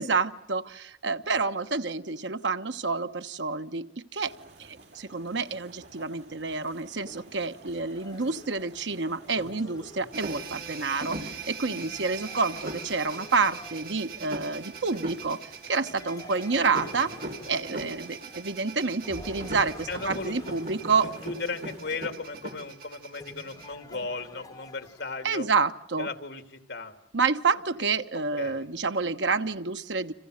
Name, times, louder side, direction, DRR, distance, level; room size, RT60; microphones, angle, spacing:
voice 1, 0.0-4.3 4.6-17.2 17.5-21.1 25.2-26.1 27.1-30.1, right 4 dB, 90° right, 9 dB, 1.1 m, -28 dB
sound 1, 4.2-22.1, right 2 dB, 70° right, 4.7 m, -52 dB
sound 2, 7.1-14.5 15.8-18.6 19.0-25.5, left 1 dB, 20° left, 2.7 m, -49 dB
sound 3, 10.1-23.7, right 3 dB, 55° right, 3.2 m, -40 dB
voice 2, 19.9-20.5 21.2-25.5 26.0-26.9 28.4-28.7, left 3 dB, 80° left, 8 dB, 2.8 m, -36 dB
29.5 x 27.0 x 6.6 m, 0.66 s
head